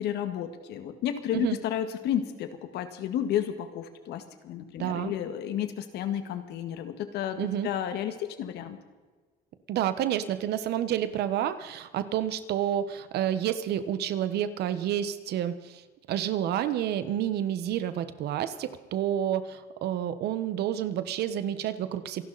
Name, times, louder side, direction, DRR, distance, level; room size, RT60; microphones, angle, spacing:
voice 1, 0.0-8.8, left 10 dB, 80° left, 9 dB, 1.9 m, -32 dB
voice 2, 4.8-5.1 7.4-7.7 9.7-22.2, right 10 dB, 75° right, 12 dB, 1.4 m, -29 dB
27.5 x 12.0 x 4.3 m, 1.3 s
cardioid pair, 110°, 17 cm